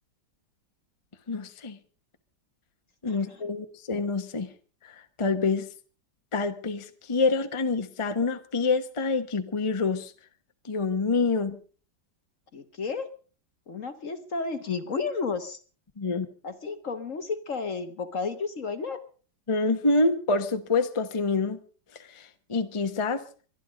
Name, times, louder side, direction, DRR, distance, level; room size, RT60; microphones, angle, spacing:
voice 1, 1.3-1.8 3.0-4.5 5.2-5.7 6.3-10.1 10.7-11.6 16.0-16.3 19.5-21.6 22.1-22.2 22.5-23.2, left 3 dB, 20° left, 0.9 m, -26 dB
voice 2, 3.1-3.4 12.5-13.1 13.7-15.6 16.4-19.0, left 4 dB, 45° left, 1.3 m, -32 dB
23.0 x 11.5 x 5.1 m
omnidirectional pair, 2.1 m